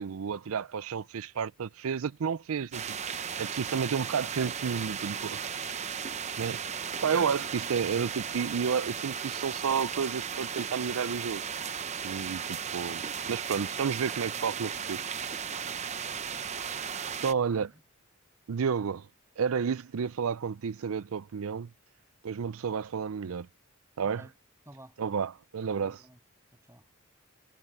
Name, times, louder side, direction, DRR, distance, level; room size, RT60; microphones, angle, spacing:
voice 1, 0.0-3.0 3.4-5.6 6.4-6.6 7.0-11.4 12.0-15.0 17.2-17.7 18.5-19.1 19.4-21.7 22.2-23.5 24.0-24.3 25.0-26.0, right 6 dB, 75° right, 0.5 m, -31 dB
sound 1, 2.7-17.3, right 7 dB, 30° right, 0.7 m, -36 dB
voice 2, 17.3-17.8 24.0-24.3 24.7-25.0 25.6-26.2 26.5-26.8, right 1 dB, 10° right, 7.1 m, -53 dB
head